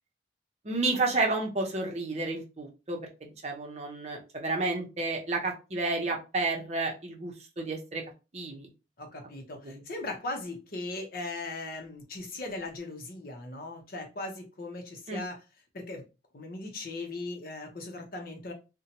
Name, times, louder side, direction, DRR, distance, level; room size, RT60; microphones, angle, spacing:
voice 1, 0.6-8.0 8.3-8.7 9.6-9.8 15.1-15.2, right 3 dB, 40° right, 1 dB, 0.7 m, -31 dB
voice 2, 9.0-15.4 15.7-16.0 16.3-18.5, left 2 dB, 50° left, 3 dB, 0.7 m, -38 dB
2.7 x 2.1 x 2.8 m, 0.29 s
head